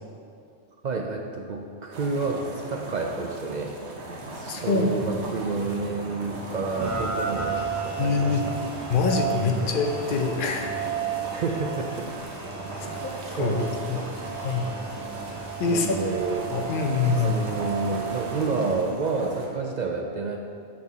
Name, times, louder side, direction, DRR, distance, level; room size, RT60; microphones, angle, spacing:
voice 1, 0.8-3.7 4.3-8.6 9.6-9.8 11.3-12.1 12.6-14.1 15.6-16.5 17.1-20.4, right 4 dB, 55° right, 1 dB, 0.5 m, -30 dB
sound 1, 1.9-19.5, right 1 dB, 75° right, 1.2 m, -39 dB
voice 2, 4.5-5.1 8.0-8.5 8.9-10.7 13.0-13.6 13.9-14.0 14.3-14.8 15.6-15.9 16.5-17.4, left 4 dB, 55° left, 2 dB, 0.8 m, -25 dB
sound 2, 5.1-8.6, right 2 dB, 70° left, 2.3 m, -45 dB
Rain, 6.8-18.7, right 6 dB, 20° right, 0.7 m, -33 dB
6.4 x 6.0 x 4.1 m, 2.5 s
omnidirectional pair, 1.2 m